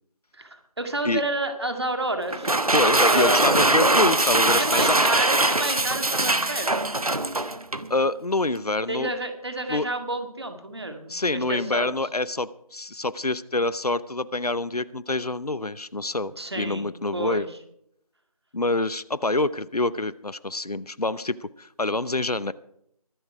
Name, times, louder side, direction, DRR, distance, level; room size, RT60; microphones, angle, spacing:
voice 1, 0.3-2.5 2.8-3.5 4.5-6.9 8.9-11.9 16.4-17.5, right 2 dB, 45° right, 7 dB, 2.0 m, -30 dB
sound 1, 2.3-7.9, right 2 dB, 70° right, 1.1 m, -22 dB
voice 2, 2.7-4.9 7.9-9.1 9.7-9.9 11.1-17.5 18.5-22.5, left 2 dB, 80° left, 18 dB, 0.8 m, -26 dB
23.0 x 8.0 x 4.8 m, 0.71 s
figure-of-eight pair, 170°, 20 cm